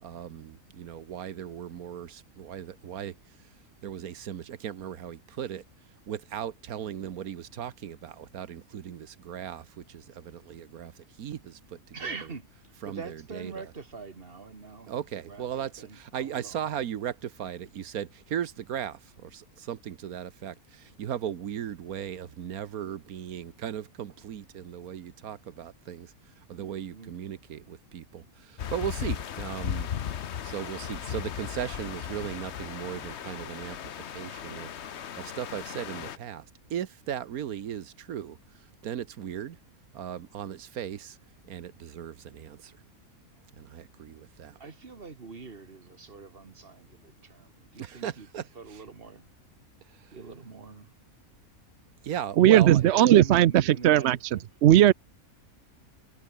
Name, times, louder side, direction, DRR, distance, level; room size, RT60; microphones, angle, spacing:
voice 1, 0.0-3.1 3.8-5.6 6.1-12.2 12.8-13.7 14.9-26.1 26.5-29.9 30.4-34.7 35.2-38.4 38.8-39.6 39.9-41.2 41.5-42.8 43.6-44.6 47.8-48.8 49.9-50.2 52.0-52.8, right 9 dB, 85° right, 1.5 m, -37 dB
voice 2, 11.9-16.6 26.9-27.2 44.6-48.3 48.6-49.3 50.1-50.9 52.5-54.4, right 4 dB, 40° right, 2.2 m, -44 dB
Windy forest, 28.6-36.2, left 9 dB, 55° left, 1.1 m, -36 dB
voice 3, 52.4-54.9, right 12 dB, 65° right, 0.7 m, -18 dB
omnidirectional pair, 1.5 m